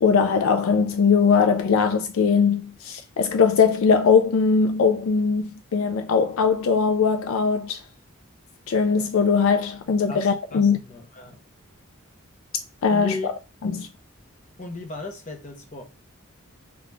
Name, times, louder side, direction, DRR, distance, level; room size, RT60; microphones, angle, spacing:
voice 1, 0.0-7.8 8.7-10.8 12.8-13.3 13.6-13.9, left 5 dB, 70° left, 0.4 m, -20 dB
voice 2, 10.1-11.4 12.9-13.3 14.6-15.8, left 2 dB, 35° left, 0.9 m, -36 dB
3.8 x 2.3 x 2.9 m
head